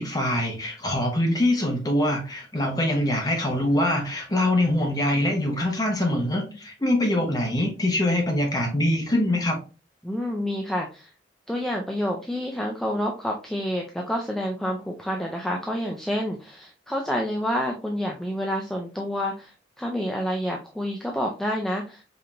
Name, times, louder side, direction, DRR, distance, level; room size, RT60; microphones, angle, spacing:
voice 1, 0.0-9.6, left 1 dB, 20° left, 1 dB, 0.9 m, -24 dB
voice 2, 10.0-11.1 11.5-22.0, equal, ahead, 0 dB, 0.3 m, -28 dB
5.0 x 2.8 x 2.4 m, 0.33 s
head